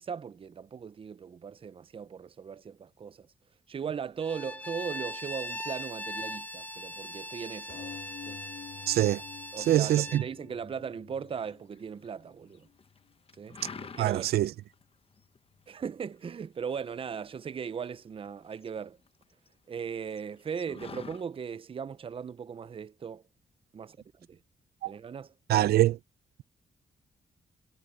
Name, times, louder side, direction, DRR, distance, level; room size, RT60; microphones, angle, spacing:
voice 1, 0.0-3.3 3.7-8.0 8.3-8.4 9.5-12.7 13.4-14.3 15.7-19.0 19.7-23.2 23.7-24.4 24.8-25.3, right 6 dB, 35° right, 0.5 m, -38 dB
Bowed string instrument, 4.2-10.3, left 1 dB, 10° left, 0.6 m, -40 dB
sound 1, 7.7-12.7 13.4-13.5 13.8-13.9, left 8 dB, 70° left, 6.1 m, -48 dB
voice 2, 8.9-9.2 9.6-10.2 14.0-14.5 24.8-24.9 25.5-26.0, right 14 dB, 90° right, 0.5 m, -24 dB
sound 2, 11.4-12.1 12.5-13.0 13.3-14.4 14.7-14.8 15.2-15.7 16.1-17.9 18.2-19.5 19.8-19.9 20.1-21.2, left 5 dB, 35° left, 1.1 m, -46 dB
cardioid pair, 105°, 16 cm